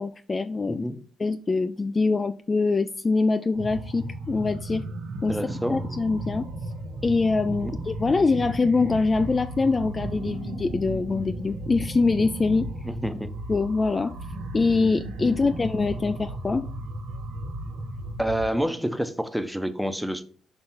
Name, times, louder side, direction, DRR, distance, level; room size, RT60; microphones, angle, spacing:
voice 1, 0.0-0.9 1.2-4.8 5.2-5.4 5.7-6.5 7.0-12.7 13.5-14.1 14.5-16.7, left 3 dB, 30° left, 0.3 m, -24 dB
voice 2, 0.7-1.0 5.3-5.9 7.6-7.7 12.8-13.3 15.2-15.5 18.2-20.2, equal, ahead, 0.7 m, -28 dB
sound 1, 3.5-18.5, right 1 dB, 90° right, 1.0 m, -35 dB
6.0 x 3.3 x 5.5 m
cardioid pair, 90°, 0 cm